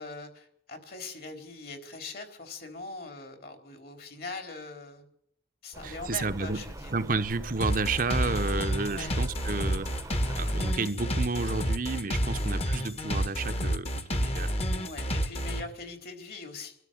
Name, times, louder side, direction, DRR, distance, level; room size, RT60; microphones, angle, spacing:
voice 1, 0.0-5.0 5.6-6.9 8.9-9.1 14.6-16.8, left 3 dB, 55° left, 4.1 m, -42 dB
Rain, 5.7-10.7, right 1 dB, 15° right, 1.0 m, -42 dB
voice 2, 5.8-6.6 6.9-9.9 10.4-14.6, right 3 dB, 50° right, 0.9 m, -31 dB
sound 1, 7.6-15.6, equal, 35° left, 1.6 m, -29 dB
24.5 x 13.0 x 8.8 m
head